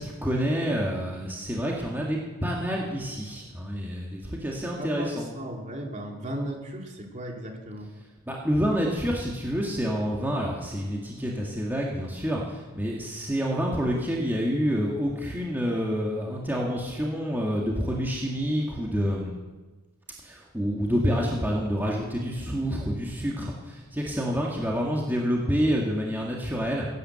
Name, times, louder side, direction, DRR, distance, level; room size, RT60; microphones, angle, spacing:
voice 1, 0.0-5.3 8.3-19.4 20.2-26.9, equal, 10° right, -2 dB, 1.9 m, -28 dB
voice 2, 4.8-7.9, right 1 dB, 35° right, 1 dB, 2.6 m, -36 dB
17.0 x 9.5 x 7.7 m, 1.2 s
head